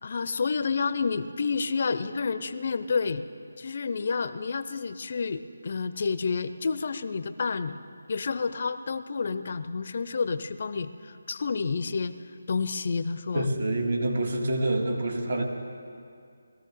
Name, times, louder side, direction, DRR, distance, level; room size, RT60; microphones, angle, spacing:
voice 1, 0.0-3.3 3.6-7.8 8.1-12.1 12.5-13.5, left 5 dB, 50° left, 13 dB, 0.5 m, -29 dB
voice 2, 13.3-15.4, right 1 dB, 60° right, 2 dB, 2.1 m, -27 dB
20.0 x 14.0 x 3.8 m, 2.3 s
figure-of-eight pair, 160°, 0 cm